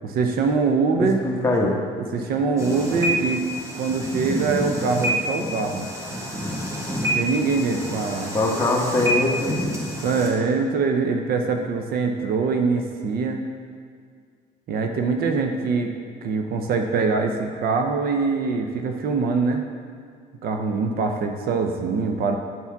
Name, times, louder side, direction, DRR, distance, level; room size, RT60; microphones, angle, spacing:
voice 1, 0.0-1.2 2.0-3.4 3.7-5.9 7.2-8.4 10.0-13.4 14.7-15.9 16.2-19.6 20.4-22.4, right 4 dB, 65° right, 4 dB, 0.6 m, -23 dB
voice 2, 0.9-1.8 8.3-9.6, left 2 dB, 15° left, -3 dB, 1.3 m, -22 dB
sound 1, 2.6-10.3, equal, 15° right, 1.5 m, -28 dB
10.0 x 4.6 x 3.5 m, 2.1 s
cardioid pair, 110°, 17 cm